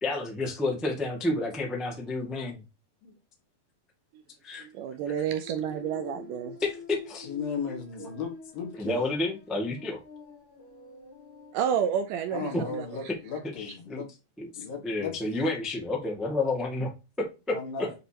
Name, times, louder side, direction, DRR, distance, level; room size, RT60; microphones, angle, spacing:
voice 1, 0.0-2.6 4.4-4.7 6.6-7.3 8.8-10.0 12.5-12.6 13.6-14.0 14.4-14.5 14.8-16.9 17.2-17.9, left 2 dB, ahead, 0.4 m, -30 dB
voice 2, 4.6-6.6 8.0-8.1 11.5-13.1, right 8 dB, 80° right, 1.9 m, -30 dB
sound 1, 5.4-11.5, left 3 dB, 50° left, 1.8 m, -47 dB
voice 3, 7.2-9.1 12.3-14.1 14.6-15.4 17.5-17.9, left 6 dB, 75° left, 3.6 m, -36 dB
7.9 x 4.9 x 2.9 m
omnidirectional pair, 4.2 m